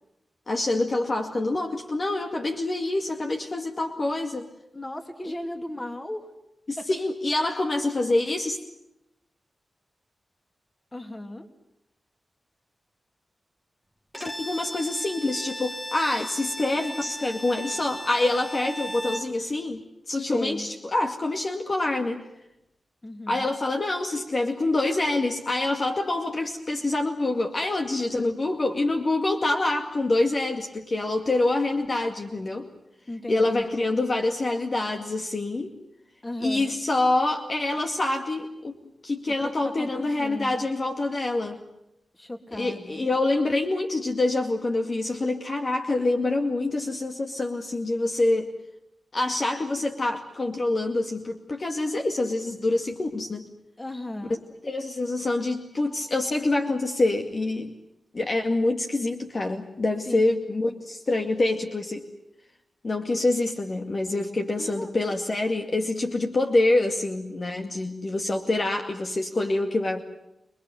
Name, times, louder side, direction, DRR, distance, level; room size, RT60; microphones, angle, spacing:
voice 1, 0.5-4.5 6.7-8.6 14.2-19.8 20.1-22.2 23.3-32.7 33.3-35.7 36.4-38.7 39.0-41.6 42.5-48.5 49.1-53.5 54.3-54.4 54.6-57.7 58.1-62.1 62.8-70.0, left 2 dB, 45° left, 3 dB, 2.2 m, -26 dB
voice 2, 4.7-6.2 6.8-6.9 10.9-11.5 20.3-20.7 23.0-23.5 33.1-33.6 36.2-36.7 39.3-40.6 42.1-43.1 53.8-54.4 60.1-60.2 64.6-65.2, left 1 dB, 20° left, 5 dB, 3.1 m, -36 dB
Bowed string instrument, 14.1-19.4, equal, 5° left, 1.7 m, -37 dB
28.0 x 21.5 x 7.7 m, 0.85 s
wide cardioid pair, 80°, 0 cm